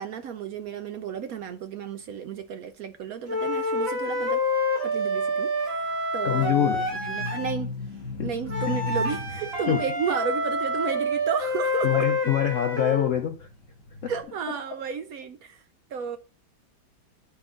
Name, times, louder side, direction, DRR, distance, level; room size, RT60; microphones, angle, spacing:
voice 1, 0.0-4.4 4.8-7.7 8.2-12.1 14.1-15.6 15.9-16.2, right 7 dB, 75° right, 0.8 m, -33 dB
sound 1, 3.3-7.6 8.5-13.1, left 1 dB, 45° right, 2.4 m, -27 dB
voice 2, 6.2-6.8 8.2-8.3 9.7-9.8 11.8-13.5 14.0-14.1, left 10 dB, 85° left, 0.6 m, -25 dB
sound 2, 6.3-11.8 12.4-14.2, left 3 dB, 60° left, 2.4 m, -36 dB
9.0 x 5.7 x 3.7 m
omnidirectional pair, 2.1 m